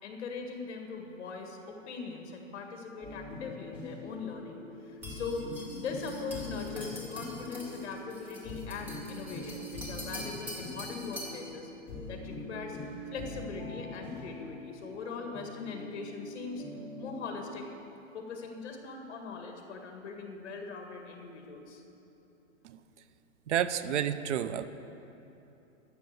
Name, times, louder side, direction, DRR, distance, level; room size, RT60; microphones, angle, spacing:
voice 1, 0.0-5.5 5.7-11.7 12.1-12.8 13.1-16.6 17.0-17.7 18.1-21.8, left 4 dB, 60° left, 3 dB, 1.9 m, -41 dB
sound 1, 3.0-17.6, left 2 dB, 15° left, 2.5 m, -43 dB
sound 2, 5.0-11.4, equal, 5° right, 0.6 m, -45 dB
voice 2, 23.5-24.7, right 9 dB, 65° right, 13 dB, 0.6 m, -30 dB
12.5 x 6.0 x 7.9 m, 2.9 s
supercardioid pair, 175°, 38 cm